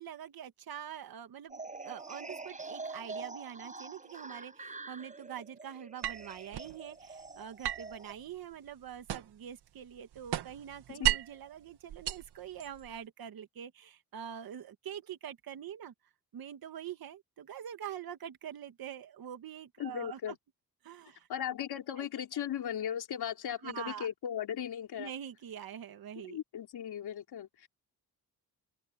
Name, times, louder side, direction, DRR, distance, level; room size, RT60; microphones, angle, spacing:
voice 1, 0.0-15.9 16.3-20.3 20.8-21.3 22.0-22.1 23.6-24.1 25.0-26.4, right 9 dB, 65° right, 1.8 m, -45 dB
sound 1, 1.5-8.1, right 3 dB, 20° right, 6.6 m, -45 dB
sound 2, 6.0-6.8 7.6-9.5 9.8-11.4 11.9-13.0, right 12 dB, 85° right, 1.8 m, -35 dB
voice 2, 19.8-20.3 21.3-25.1 26.2-27.7, left 9 dB, 80° left, 3.7 m, -37 dB
open air
wide cardioid pair, 135°, 39 cm